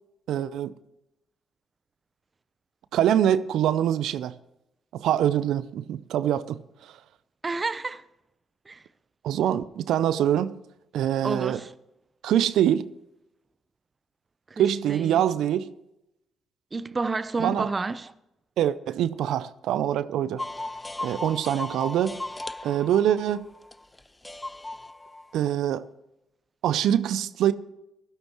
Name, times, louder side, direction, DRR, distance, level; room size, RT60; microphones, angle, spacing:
voice 1, 0.3-0.7 2.9-4.3 4.9-7.0 9.2-10.6 10.9-11.6 12.2-12.9 14.6-15.7 17.4-17.7 18.6-20.4 21.0-22.2 22.6-23.5 25.3-25.9 26.6-27.5, right 10 dB, 75° right, 0.5 m, -24 dB
voice 2, 7.4-8.0 8.7-8.8 11.2-11.7 14.5-14.6 14.9-15.2 16.7-18.1, right 3 dB, 35° right, 0.7 m, -30 dB
sound 1, 20.4-25.5, left 2 dB, 15° left, 0.3 m, -37 dB
16.5 x 12.5 x 3.1 m
hypercardioid pair, 50°, 0 cm